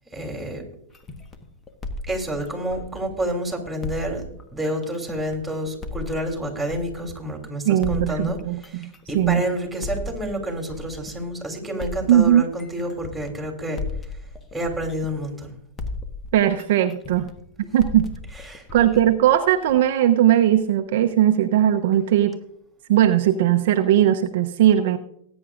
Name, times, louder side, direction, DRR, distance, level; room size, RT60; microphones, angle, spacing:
voice 1, 0.1-0.6 2.1-4.2 4.5-13.8 14.5-15.5 18.3-18.7, equal, 5° right, 1 dB, 3.4 m, -29 dB
sound 1, 0.9-3.4 3.8-7.3 7.8-11.4 11.8-15.5 15.8-19.9, left 3 dB, 20° left, 1.4 m, -36 dB
voice 2, 7.7-8.9 9.1-9.5 12.1-12.4 16.3-17.3 17.7-18.1 18.7-22.4 22.9-25.0, right 11 dB, 60° right, 6 dB, 0.8 m, -18 dB
19.5 x 9.7 x 2.5 m, 0.72 s
hypercardioid pair, 110°, 0 cm